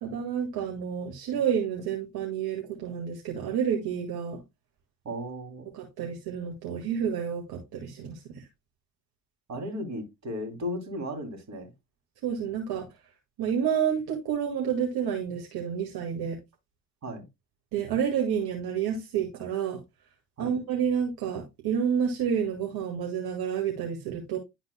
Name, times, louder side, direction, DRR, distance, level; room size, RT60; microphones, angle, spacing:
voice 1, 0.0-4.4 5.7-8.4 12.2-12.9 13.4-16.4 17.7-19.8 20.4-24.4, right 8 dB, 55° right, 1.9 m, -29 dB
voice 2, 5.0-5.7 9.5-11.7 17.0-17.3 20.4-20.5, equal, 40° right, 2.9 m, -35 dB
11.5 x 4.0 x 2.2 m
hypercardioid pair, 60°, 44 cm